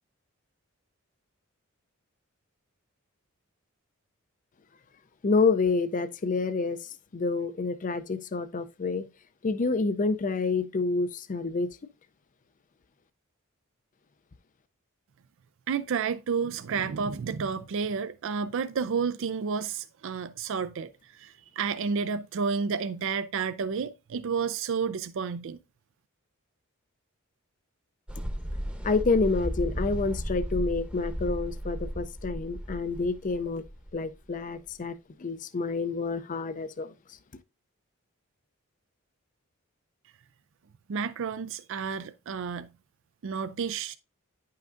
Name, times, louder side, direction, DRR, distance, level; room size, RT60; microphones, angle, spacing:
voice 1, 5.2-6.8 7.1-9.1 9.4-11.7 28.8-33.6 33.9-34.9 35.2-36.9, left 4 dB, 40° left, 0.5 m, -28 dB
voice 2, 15.7-20.9 21.2-25.6 40.9-42.7 43.2-43.9, right 5 dB, 65° right, 0.4 m, -31 dB
sound 1, 28.1-34.7, equal, 5° right, 0.9 m, -35 dB
10.0 x 5.7 x 2.5 m
head